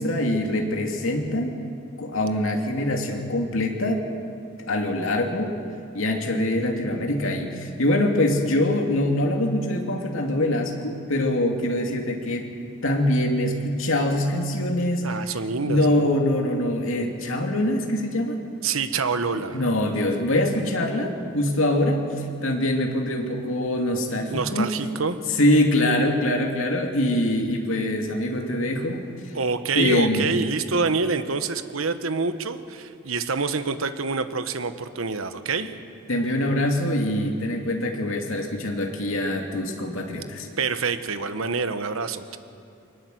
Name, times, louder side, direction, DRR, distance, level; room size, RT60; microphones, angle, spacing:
voice 1, 0.0-1.6 2.0-4.1 4.7-5.6 5.9-12.5 12.8-15.1 15.6-18.4 19.3-24.8 25.4-29.3 29.7-30.4 36.1-40.5, left 1 dB, 75° left, 2 dB, 2.6 m, -24 dB
voice 2, 15.0-16.1 18.6-19.6 24.3-25.2 29.3-35.8 40.6-42.4, right 4 dB, 85° right, 10 dB, 1.2 m, -26 dB
23.5 x 19.5 x 7.9 m, 2.6 s
head